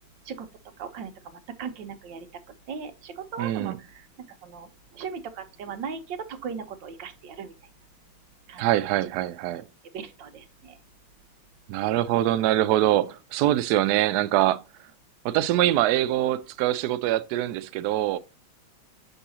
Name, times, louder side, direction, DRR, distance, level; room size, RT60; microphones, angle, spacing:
voice 1, 0.8-2.3 2.7-4.1 4.4-7.5 8.5-8.7 9.9-10.8, right 6 dB, 65° right, 1.5 m, -38 dB
voice 2, 3.4-3.8 8.6-9.6 11.7-14.6 15.2-18.2, right 13 dB, 85° right, 0.9 m, -24 dB
6.8 x 5.5 x 2.8 m
omnidirectional pair, 2.2 m